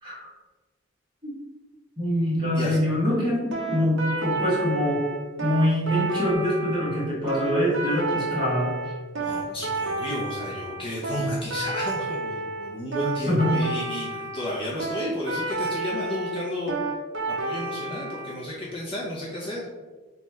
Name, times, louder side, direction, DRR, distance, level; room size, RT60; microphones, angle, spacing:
voice 1, 2.0-5.0 5.4-8.8 13.2-13.6, equal, 20° right, -7 dB, 1.4 m, -24 dB
sound 1, 3.5-18.4, right 3 dB, 55° right, 0.6 m, -30 dB
voice 2, 9.2-16.8 17.3-19.7, left 1 dB, 25° left, -5 dB, 0.5 m, -32 dB
3.2 x 2.4 x 4.3 m, 1.3 s
head